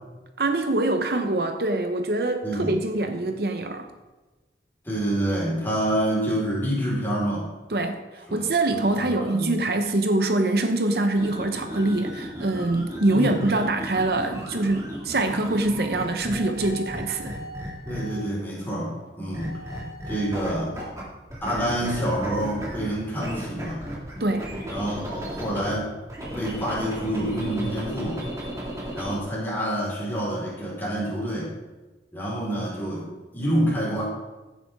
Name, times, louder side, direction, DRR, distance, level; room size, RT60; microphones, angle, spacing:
voice 1, 0.4-3.9 7.7-17.3 24.2-24.5, right 2 dB, 60° right, 6 dB, 0.8 m, -24 dB
voice 2, 2.4-2.7 3.1-3.2 4.8-7.5 8.3-8.4 8.7-9.5 13.1-13.4 17.8-19.6 20.1-20.8 21.4-23.8 24.7-25.9 26.3-28.2 28.9-31.5 32.1-33.1 33.3-34.0, right 1 dB, 10° left, -6 dB, 4.5 m, -27 dB
sound 1, 11.1-18.3 19.3-21.0 21.3-25.7 26.1-29.2, equal, 20° right, 2.4 m, -35 dB
15.5 x 9.2 x 3.6 m, 1.2 s
head